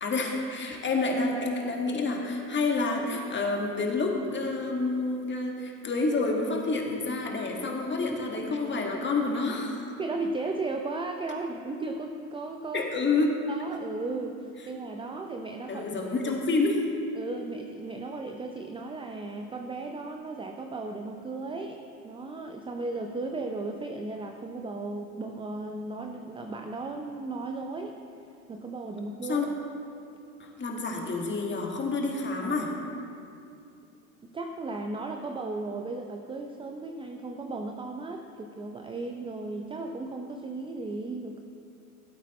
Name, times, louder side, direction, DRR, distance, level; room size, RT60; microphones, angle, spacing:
voice 1, 0.0-9.8 12.7-13.4 15.7-16.8 29.3-29.5 30.4-32.7, left 3 dB, 25° left, 0 dB, 1.8 m, -28 dB
voice 2, 10.0-12.9 13.5-15.9 16.2-16.3 17.1-27.9 28.5-29.5 34.3-41.4, right 3 dB, 10° right, 4 dB, 0.5 m, -35 dB
16.5 x 8.2 x 3.1 m, 2.5 s
hypercardioid pair, 85°, 46 cm